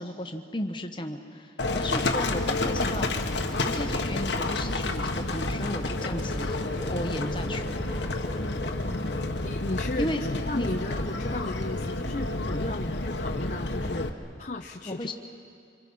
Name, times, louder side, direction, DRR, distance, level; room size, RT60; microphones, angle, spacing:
voice 1, 0.0-3.1 3.6-6.6 6.9-7.7 10.0-10.2 10.5-10.7 14.8-15.1, left 1 dB, 25° left, 4 dB, 1.3 m, -34 dB
Livestock farm animals working animals, 1.6-14.1, left 2 dB, 85° left, 1.4 m, -30 dB
sound 1, 6.0-9.7, left 1 dB, 5° left, 2.0 m, -43 dB
voice 2, 8.8-14.1 14.4-15.1, left 2 dB, 40° left, 3 dB, 0.7 m, -35 dB
29.0 x 26.5 x 5.7 m, 2.4 s
head